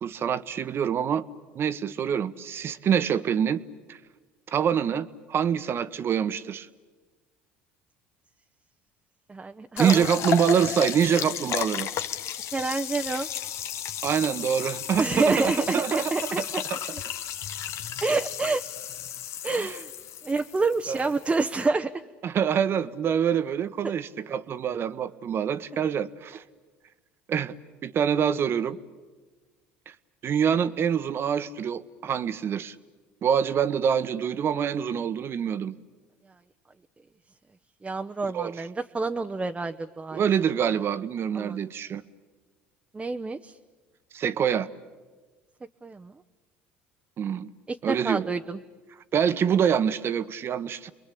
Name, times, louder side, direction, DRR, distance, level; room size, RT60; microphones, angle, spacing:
voice 1, 0.0-1.2 1.5-3.6 3.9-4.0 4.5-6.7 9.8-11.9 14.0-16.4 16.7-16.8 19.6-19.7 20.9-21.1 22.2-26.4 27.3-27.5 27.8-28.8 29.9-30.0 30.2-32.7 33.2-35.7 38.2-38.6 40.1-42.0 44.1-44.7 47.2-47.5 47.8-48.3 49.1-50.9, right 8 dB, 45° right, 14 dB, 1.2 m, -25 dB
voice 2, 9.3-10.1 12.5-13.3 15.0-16.6 18.0-18.6 19.4-19.9 20.2-21.9 23.8-23.9 37.8-40.2 41.3-41.6 42.9-43.6 45.8-46.1 47.7-48.6, right 3 dB, 20° right, 6 dB, 0.9 m, -28 dB
sound 1, 9.8-21.7, left 9 dB, 60° left, 1.2 m, -34 dB
30.0 x 22.0 x 8.6 m, 1.3 s
hypercardioid pair, 70°, 6 cm